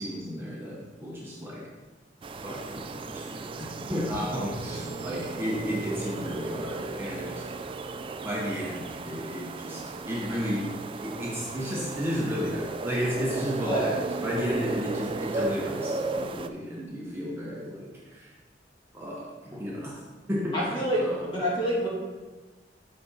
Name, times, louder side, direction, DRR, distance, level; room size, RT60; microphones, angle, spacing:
voice 1, 0.0-1.7 2.4-7.4 8.2-10.7 11.0-18.4 18.9-20.0 20.3-21.4, equal, 15° right, -5 dB, 0.9 m, -33 dB
sound 1, 2.2-16.5, right 3 dB, 30° right, 0.3 m, -35 dB
voice 2, 20.5-21.9, equal, 30° left, -6 dB, 2.3 m, -27 dB
6.2 x 5.9 x 4.1 m, 1.3 s
head